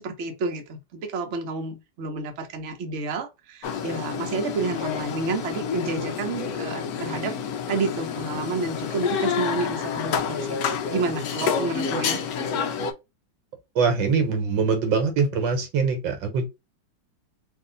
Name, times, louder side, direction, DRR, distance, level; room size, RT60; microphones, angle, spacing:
voice 1, 0.0-7.3 7.7-12.2, right 3 dB, 50° right, 1.0 m, -30 dB
sound 1, 3.6-12.9, left 7 dB, 65° left, 1.0 m, -29 dB
voice 2, 13.8-16.4, right 5 dB, 75° right, 1.6 m, -23 dB
3.6 x 2.6 x 3.9 m
omnidirectional pair, 2.1 m